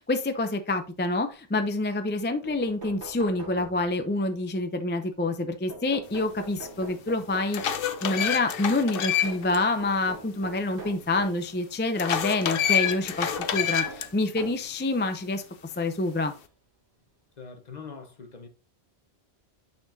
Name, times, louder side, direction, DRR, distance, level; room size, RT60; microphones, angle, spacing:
voice 1, 0.0-15.4 15.8-16.3, left 2 dB, 15° left, 0.4 m, -27 dB
sound 1, 2.4-4.2 5.7-7.8 9.2-11.5 12.8-14.7 15.6-15.7 17.0-17.1 17.4-17.5, right 3 dB, 60° right, 2.0 m, -43 dB
sound 2, 6.6-6.7 7.2-9.6 9.9-10.0 12.0-14.1, left 9 dB, 65° left, 0.8 m, -27 dB
voice 2, 17.4-18.5, left 5 dB, 45° left, 1.1 m, -42 dB
8.9 x 4.3 x 2.7 m
omnidirectional pair, 1.0 m